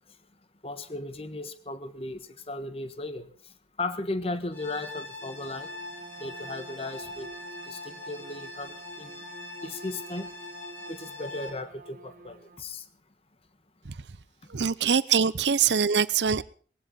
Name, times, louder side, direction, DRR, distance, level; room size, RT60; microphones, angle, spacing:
voice 1, 0.6-2.2 2.5-3.3 3.8-5.7 6.2-7.3 7.7-9.2 9.6-10.3 10.9-12.8, left 2 dB, 35° left, 1.4 m, -36 dB
sound 1, 4.5-11.5, left 2 dB, 10° left, 3.2 m, -42 dB
Bowed string instrument, 5.1-12.7, right 3 dB, 50° right, 0.9 m, -48 dB
voice 2, 14.5-16.4, right 6 dB, 80° right, 0.7 m, -23 dB
19.5 x 16.0 x 4.0 m
head